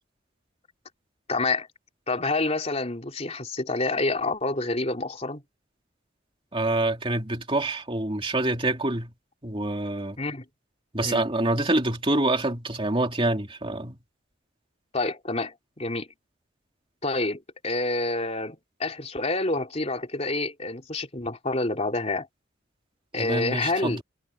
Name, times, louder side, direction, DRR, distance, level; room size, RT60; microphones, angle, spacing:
voice 1, 1.3-1.7 2.1-5.4 10.2-10.4 11.0-11.2 14.9-16.1 17.0-22.3 23.1-24.0, left 2 dB, 30° left, 3.4 m, -28 dB
voice 2, 6.5-9.1 9.4-10.2 10.9-14.0 23.2-24.0, right 2 dB, 25° right, 2.8 m, -26 dB
head